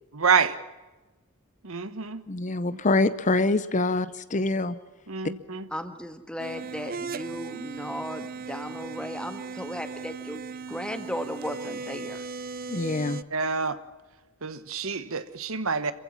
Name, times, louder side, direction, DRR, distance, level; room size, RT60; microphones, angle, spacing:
voice 1, 0.1-0.6 1.6-2.2 5.1-5.6 13.3-13.8 14.4-15.9, right 5 dB, 65° right, 1.2 m, -27 dB
voice 2, 2.3-4.8 12.7-13.2, left 2 dB, 35° left, 0.7 m, -25 dB
voice 3, 5.7-12.3, equal, 5° left, 1.6 m, -36 dB
sound 1, 6.4-13.2, right 4 dB, 40° right, 0.6 m, -37 dB
26.5 x 15.5 x 7.4 m
head